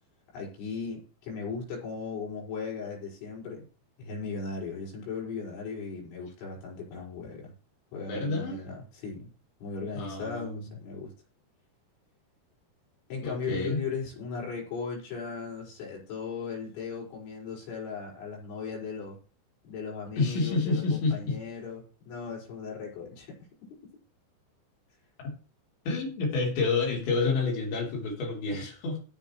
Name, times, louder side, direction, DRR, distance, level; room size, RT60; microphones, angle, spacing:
voice 1, 0.3-3.7 4.0-7.5 7.9-9.2 9.6-11.1 13.1-19.2 19.7-23.3, left 4 dB, 85° left, -3 dB, 8.1 m, -37 dB
voice 2, 8.1-8.6 9.9-10.7 13.2-13.8 20.2-21.4 25.2-25.3 25.9-29.0, left 3 dB, 70° left, 0 dB, 5.8 m, -29 dB
18.5 x 7.1 x 3.2 m, 0.36 s
omnidirectional pair, 5.3 m